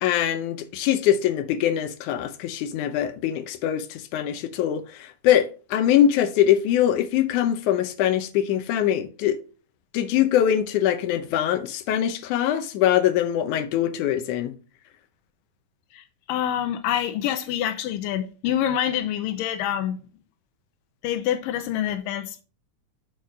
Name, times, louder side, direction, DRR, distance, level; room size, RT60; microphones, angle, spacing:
voice 1, 0.0-9.4 9.9-14.5, left 11 dB, 75° left, 2.0 m, -23 dB
voice 2, 15.9-20.0 21.0-22.4, left 10 dB, 90° left, 2.3 m, -26 dB
6.6 x 6.0 x 4.6 m
omnidirectional pair, 3.9 m